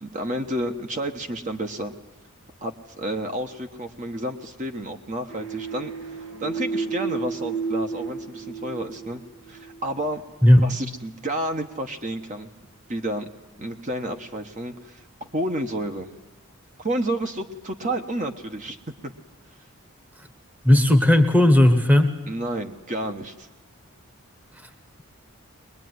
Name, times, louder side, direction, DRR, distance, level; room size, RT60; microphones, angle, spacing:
voice 1, 0.0-1.9 2.6-9.2 9.5-10.2 10.6-12.5 12.9-13.3 13.6-16.1 16.8-19.1 22.3-23.5, right 1 dB, 35° right, 5 dB, 1.2 m, -30 dB
sound 1, 5.3-9.8, right 4 dB, 80° right, 2.4 m, -31 dB
voice 2, 20.6-22.1, left 1 dB, 5° right, 8 dB, 1.3 m, -15 dB
21.5 x 21.5 x 9.6 m, 1.0 s
head